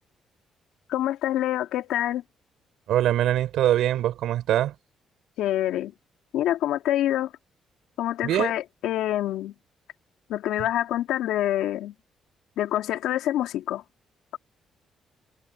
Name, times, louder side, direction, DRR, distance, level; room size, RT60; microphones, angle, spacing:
voice 1, 0.9-2.2 5.4-5.9 6.3-7.3 8.0-9.5 10.3-11.9 12.6-13.8, left 13 dB, 90° left, 2.5 m, -26 dB
voice 2, 2.9-4.7 8.2-8.5, right 12 dB, 80° right, 5.6 m, -23 dB
cardioid pair, 90°, 0 cm